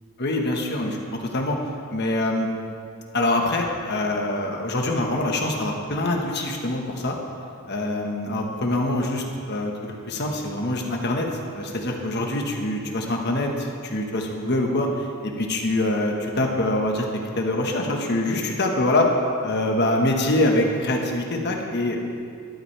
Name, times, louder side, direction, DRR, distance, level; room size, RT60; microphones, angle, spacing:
voice 1, 0.2-1.6 1.9-2.5 3.1-7.1 7.7-11.3 11.5-17.1 17.4-19.1 19.4-22.0, left 1 dB, 50° left, 1 dB, 1.3 m, -24 dB
13.5 x 12.0 x 3.4 m, 2.4 s
head